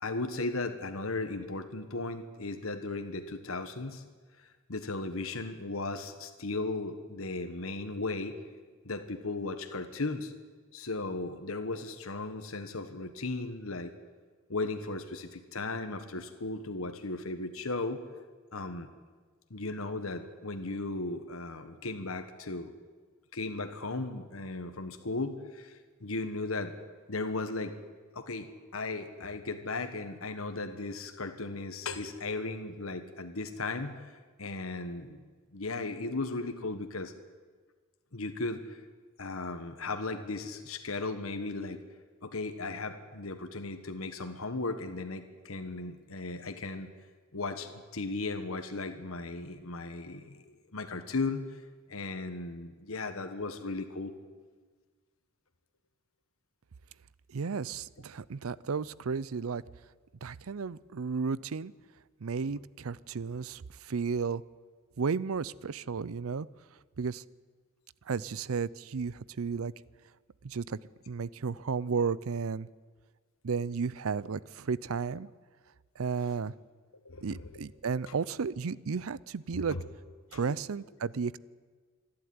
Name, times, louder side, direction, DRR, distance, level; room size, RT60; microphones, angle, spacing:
voice 1, 0.0-4.0 4.7-8.3 8.8-10.3 10.7-13.9 14.5-18.0 18.5-18.9 19.5-22.7 23.3-26.7 27.1-27.7 28.1-28.5 28.7-34.0 34.4-35.2 35.5-37.1 38.1-38.6 39.2-41.8 42.2-46.9 47.3-50.4 50.7-51.5 51.9-54.1 77.0-77.6 79.5-79.9, left 3 dB, 85° left, 8 dB, 1.4 m, -36 dB
voice 2, 57.3-59.6 60.2-61.7 62.2-64.4 65.0-66.5 67.0-67.2 68.1-69.7 70.4-70.8 71.1-72.7 73.4-75.3 76.0-76.5 77.2-79.8 80.3-81.4, right 5 dB, 85° right, 20 dB, 0.5 m, -33 dB
27.0 x 11.5 x 9.6 m, 1.5 s
head